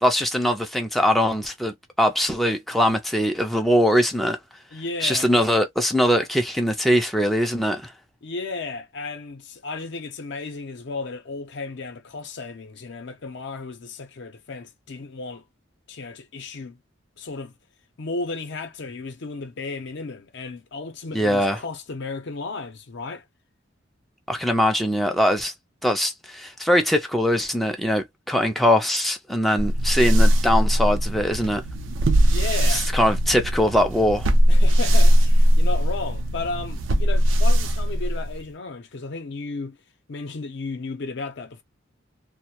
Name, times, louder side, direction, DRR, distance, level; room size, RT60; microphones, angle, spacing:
voice 1, 0.0-4.4 5.0-7.9 21.1-21.6 24.3-25.5 25.8-31.6 32.7-34.3, equal, ahead, 0.3 m, -21 dB
voice 2, 4.7-5.3 8.2-15.4 15.9-16.8 17.2-17.5 18.0-23.2 32.3-33.1 34.5-39.8 40.1-41.6, left 3 dB, 60° left, 0.5 m, -34 dB
sound 1, 29.6-38.5, equal, 75° right, 0.5 m, -19 dB
2.2 x 2.0 x 2.7 m
head